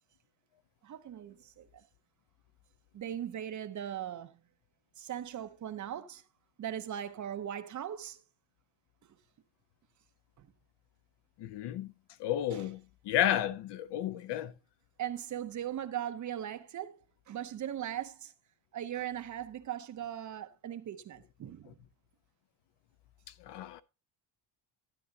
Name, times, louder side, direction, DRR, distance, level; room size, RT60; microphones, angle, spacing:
voice 1, 0.8-1.8 2.9-4.4 5.0-6.2 6.6-8.2 10.4-10.5 12.5-12.7 15.0-17.0 17.3-18.3 18.7-21.8, right 10 dB, 35° right, 0.6 m, -39 dB
voice 2, 11.4-11.9 12.2-14.5 23.5-23.8, left 11 dB, 60° left, 0.6 m, -32 dB
12.0 x 9.7 x 2.7 m
cardioid pair, 160°, 49 cm